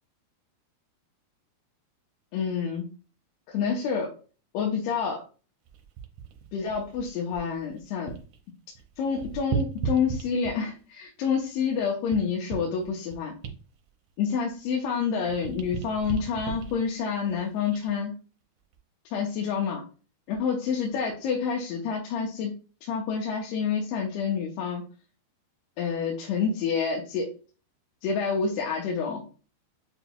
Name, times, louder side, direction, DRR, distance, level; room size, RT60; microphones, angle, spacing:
voice 1, 2.3-2.9 3.5-4.1 4.5-5.2 6.5-8.1 9.0-13.3 14.2-18.2 19.1-19.8 20.3-22.5 22.8-24.8 25.8-27.3 28.0-29.2, left 6 dB, 85° left, -1 dB, 2.8 m, -28 dB
sound 1, 5.7-8.4 8.7-10.8 11.4-14.9 15.2-18.0 18.6-18.8, right 7 dB, 85° right, 1.7 m, -37 dB
7.2 x 3.0 x 2.2 m, 0.35 s
omnidirectional pair, 4.5 m